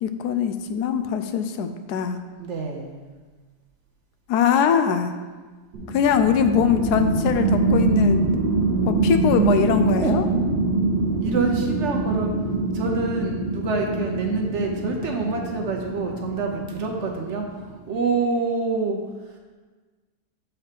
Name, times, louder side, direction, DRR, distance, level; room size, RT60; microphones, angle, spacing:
voice 1, 0.0-2.2 4.3-5.1 5.9-8.2 8.9-10.2, left 8 dB, 80° left, 8 dB, 1.1 m, -22 dB
voice 2, 2.4-3.1 10.0-10.1 11.2-12.3 12.7-17.5 17.9-19.0, right 4 dB, 55° right, 1 dB, 0.9 m, -26 dB
sound 1, 5.7-17.8, right 3 dB, 85° right, 1.4 m, -24 dB
6.8 x 4.4 x 5.0 m, 1.3 s
omnidirectional pair, 1.7 m